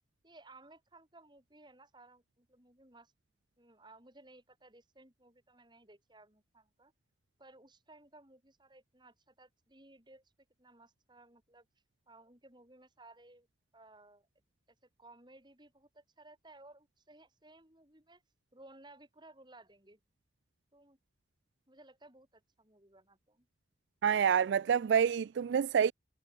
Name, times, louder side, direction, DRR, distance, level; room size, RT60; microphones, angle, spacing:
voice 1, 0.2-3.1 3.6-6.9 7.4-10.2 10.6-11.7 12.1-13.5 13.7-14.3 15.0-18.2 18.5-20.0 20.7-21.0 21.7-23.5, right 2 dB, 25° right, 6.1 m, -59 dB
voice 2, 24.0-25.9, right 7 dB, 75° right, 0.3 m, -27 dB
head